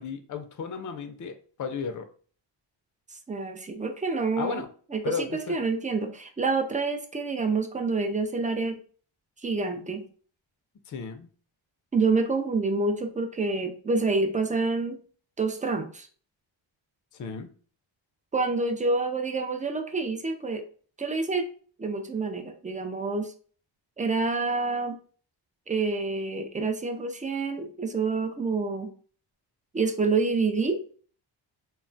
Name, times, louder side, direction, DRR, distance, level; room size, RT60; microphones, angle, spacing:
voice 1, 0.0-2.1 4.4-4.7 5.0-5.6 10.9-11.3 17.1-17.5, left 5 dB, 40° left, 8 dB, 0.5 m, -34 dB
voice 2, 3.1-4.7 4.9-8.8 9.4-10.0 11.9-15.0 15.4-16.1 18.3-20.6 21.0-21.5 21.8-23.3 24.0-25.0 25.7-28.9 29.7-30.8, right 3 dB, 20° right, 6 dB, 0.3 m, -27 dB
2.2 x 2.0 x 3.8 m, 0.43 s
cardioid pair, 100°, 47 cm